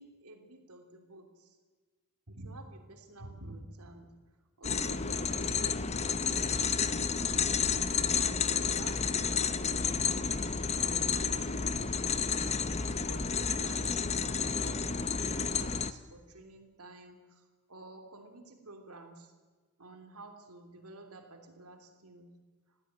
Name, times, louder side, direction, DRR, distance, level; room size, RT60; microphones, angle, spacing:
voice 1, 0.0-1.6 2.3-4.1 4.6-6.9 8.1-12.2 12.8-17.4 17.7-19.3 19.8-22.3, right 2 dB, 85° right, 4 dB, 3.3 m, -51 dB
sound 1, 4.6-15.9, left 6 dB, 30° left, 0.7 m, -31 dB
21.0 x 15.0 x 9.1 m, 1.4 s
head